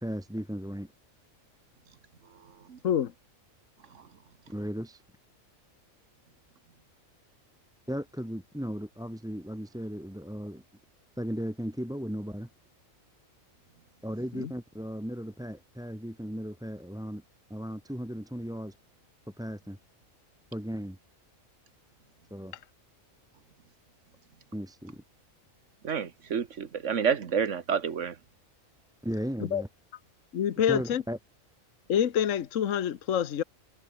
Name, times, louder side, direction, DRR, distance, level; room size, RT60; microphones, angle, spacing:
voice 1, 0.0-0.9 4.5-5.0 7.9-10.6 11.2-12.5 14.0-17.2 17.5-18.8 19.4-19.8 20.5-21.0 22.3-22.5 24.5-25.0 29.0-29.7 30.7-31.2, equal, 5° right, 1.1 m, -36 dB
voice 2, 25.8-28.1, right 7 dB, 60° right, 1.7 m, -29 dB
voice 3, 30.3-31.0 31.9-33.4, left 9 dB, 70° left, 1.3 m, -26 dB
omnidirectional pair, 1.4 m